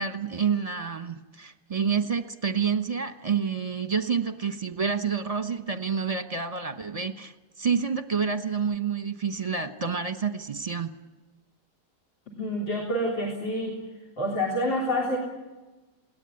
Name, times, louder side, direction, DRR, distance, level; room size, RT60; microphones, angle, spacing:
voice 1, 0.0-7.3 7.6-10.9, right 6 dB, 25° right, 9 dB, 0.9 m, -28 dB
voice 2, 12.4-13.8 14.2-15.2, equal, 85° left, 1 dB, 4.4 m, -27 dB
21.0 x 18.0 x 9.7 m, 1.2 s
omnidirectional pair, 2.0 m